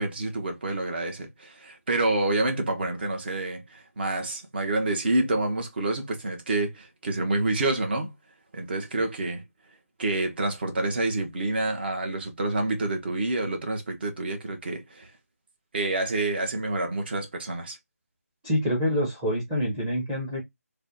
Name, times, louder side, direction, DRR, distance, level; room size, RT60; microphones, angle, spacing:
voice 1, 0.0-8.1 8.5-9.4 10.0-15.1 15.7-17.8, right 2 dB, 40° right, 1.1 m, -28 dB
voice 2, 18.4-20.4, equal, 10° right, 0.9 m, -26 dB
3.3 x 2.3 x 4.0 m
figure-of-eight pair, 160°, 8 cm